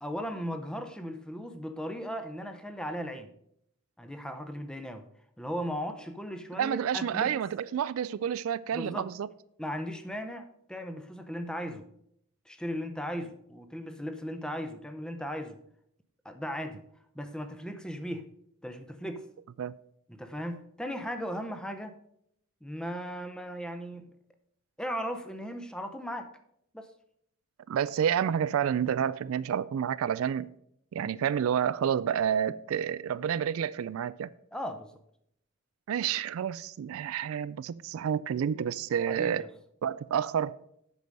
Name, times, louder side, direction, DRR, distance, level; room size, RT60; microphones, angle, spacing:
voice 1, 0.0-3.3 4.0-5.0 5.4-7.3 8.7-9.1 9.6-11.9 12.5-15.6 16.2-16.8 17.1-18.3 18.6-19.2 20.1-22.0 22.6-24.1 24.8-26.3 26.7-26.9 34.5-34.9 39.1-39.5, equal, 5° left, 0.6 m, -37 dB
voice 2, 6.5-9.3 19.6-19.7 27.7-30.5 30.9-34.3 35.9-39.5 39.8-40.5, right 8 dB, 70° right, 0.3 m, -29 dB
8.3 x 6.1 x 5.3 m
head